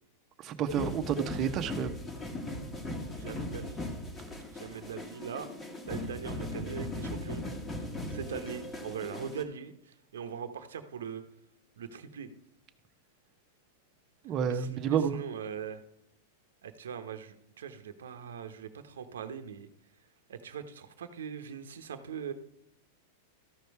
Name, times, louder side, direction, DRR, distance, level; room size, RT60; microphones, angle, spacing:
voice 1, 0.4-2.0 14.2-15.2, right 8 dB, 35° right, 8 dB, 1.0 m, -30 dB
sound 1, 0.7-9.4, left 1 dB, 15° left, 1.5 m, -38 dB
voice 2, 3.1-3.8 4.5-5.5 5.9-7.5 7.8-11.2 11.8-12.3 14.5-15.8 16.6-19.7 20.3-22.3, right 7 dB, 85° right, 8 dB, 0.9 m, -41 dB
13.5 x 5.3 x 4.7 m, 0.77 s
hypercardioid pair, 125°, 0 cm